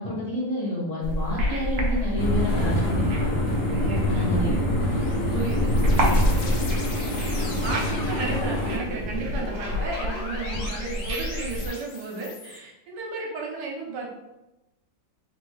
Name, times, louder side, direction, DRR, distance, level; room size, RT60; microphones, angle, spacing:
voice 1, 0.0-3.3 4.1-4.5, left 1 dB, 25° left, -6 dB, 1.0 m, -29 dB
sound 1, 1.0-11.7, equal, 85° right, 0.6 m, -28 dB
sound 2, 2.2-8.8, equal, 65° left, 1.2 m, -26 dB
voice 2, 4.3-4.8 5.3-6.8 7.3-14.1, right 3 dB, 70° right, -1 dB, 1.3 m, -34 dB
sound 3, 5.0-12.6, left 3 dB, 85° left, 1.4 m, -38 dB
3.3 x 2.7 x 3.2 m, 0.97 s
omnidirectional pair, 2.0 m